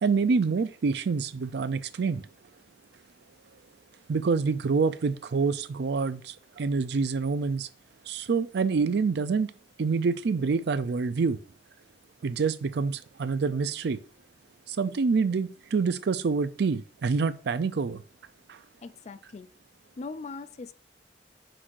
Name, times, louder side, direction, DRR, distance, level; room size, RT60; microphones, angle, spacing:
voice 1, 0.0-2.2 4.1-7.7 8.1-9.5 9.8-11.4 12.2-14.0 14.7-18.0 18.5-18.6, right 4 dB, 70° right, 0.4 m, -27 dB
voice 2, 18.8-19.5 20.0-20.7, left 4 dB, 40° left, 0.4 m, -40 dB
6.3 x 6.0 x 2.5 m
head